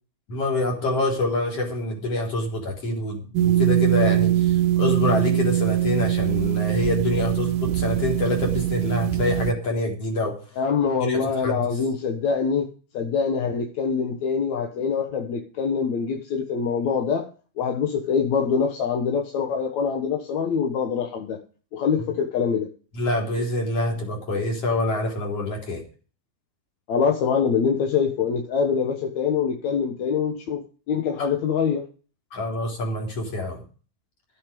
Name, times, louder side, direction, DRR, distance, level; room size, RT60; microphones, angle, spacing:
voice 1, 0.3-10.4 11.0-11.7 22.9-25.8 32.3-33.6, left 2 dB, 40° left, 4.8 m, -26 dB
sound 1, 3.4-9.5, right 13 dB, 85° right, 1.8 m, -22 dB
voice 2, 10.6-12.7 12.9-17.3 17.6-21.4 21.7-22.7 26.9-30.6 30.9-31.8, left 6 dB, 60° left, 2.3 m, -24 dB
15.0 x 8.6 x 5.3 m
omnidirectional pair, 4.4 m